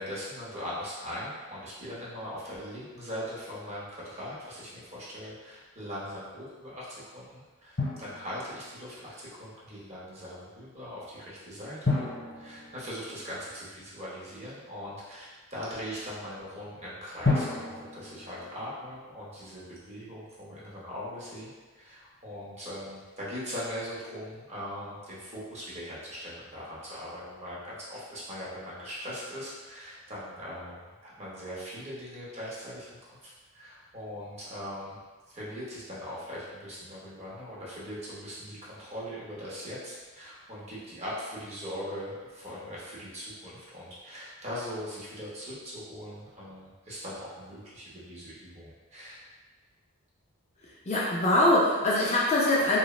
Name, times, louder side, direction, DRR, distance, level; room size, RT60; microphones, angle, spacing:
voice 1, 0.0-21.5 21.8-35.0 35.3-49.2, equal, 30° right, -7 dB, 0.6 m, -40 dB
Drum, 7.8-8.9 11.8-13.7 17.2-19.2, left 3 dB, 55° left, 0.9 m, -32 dB
voice 2, 50.9-52.8, left 1 dB, 30° left, -5 dB, 0.3 m, -23 dB
3.0 x 2.0 x 2.3 m, 1.3 s
head